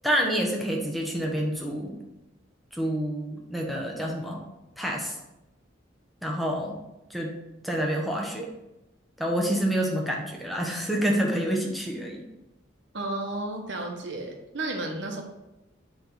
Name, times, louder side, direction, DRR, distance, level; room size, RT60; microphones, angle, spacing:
voice 1, 0.0-2.0 2.7-4.4 4.8-5.2 6.2-6.8 7.1-8.5 9.2-12.2, equal, ahead, -1 dB, 1.0 m, -28 dB
voice 2, 12.9-15.2, right 2 dB, 65° right, 1 dB, 1.2 m, -32 dB
8.8 x 3.6 x 3.9 m, 0.93 s
head